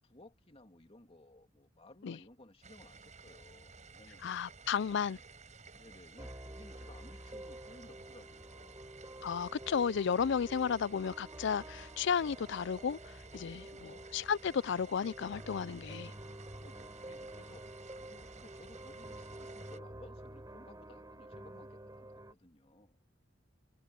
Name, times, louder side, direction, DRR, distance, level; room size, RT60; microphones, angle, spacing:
voice 1, 0.0-4.2 5.7-8.9 13.7-14.1 16.5-17.7 18.0-23.0, left 1 dB, 30° left, 2.6 m, -58 dB
sound 1, 2.6-19.8, right 4 dB, 40° right, 7.3 m, -55 dB
voice 2, 4.2-5.2 9.2-13.0 13.3-16.1, left 7 dB, 65° left, 0.4 m, -33 dB
sound 2, 6.2-22.3, right 1 dB, 20° right, 4.3 m, -49 dB
head